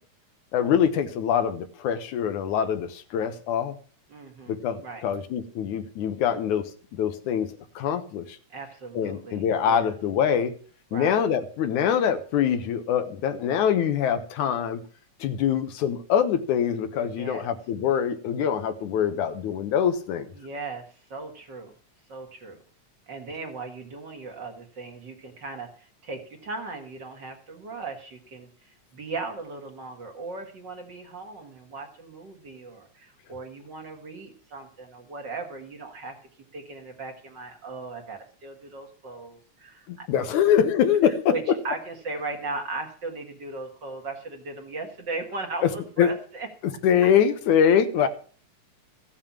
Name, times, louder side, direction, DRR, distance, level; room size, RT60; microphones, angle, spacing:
voice 1, 0.5-3.8 4.5-7.5 7.8-8.4 9.0-10.5 10.9-14.8 15.2-20.3 39.9-41.6 45.6-45.7 46.0-46.1 46.6-48.1, left 8 dB, 85° left, 9 dB, 2.6 m, -24 dB
voice 2, 4.1-5.0 8.5-9.9 10.9-11.2 17.2-17.5 20.4-21.7 22.1-22.6 23.1-36.2 36.5-40.1 41.0-46.5 48.0-48.1, right 3 dB, 45° right, 3 dB, 2.1 m, -37 dB
15.5 x 7.3 x 7.3 m, 0.44 s
omnidirectional pair, 3.3 m